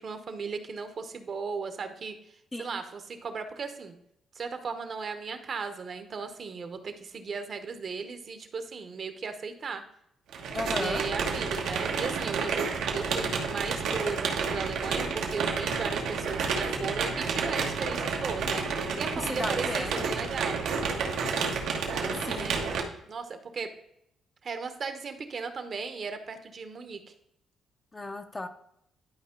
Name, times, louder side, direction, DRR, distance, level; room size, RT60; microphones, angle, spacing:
voice 1, 0.0-2.2 2.6-3.9 4.3-9.8 10.7-20.6 22.0-23.7 24.4-27.1, right 5 dB, 45° right, 8 dB, 0.9 m, -36 dB
sound 1, 10.3-22.8, right 5 dB, 85° right, 1.3 m, -30 dB
voice 2, 10.5-11.0 19.2-20.1 22.2-22.6 27.9-28.5, left 2 dB, 20° left, 7 dB, 0.6 m, -35 dB
11.5 x 4.8 x 3.8 m, 0.76 s
cardioid pair, 115°, 0 cm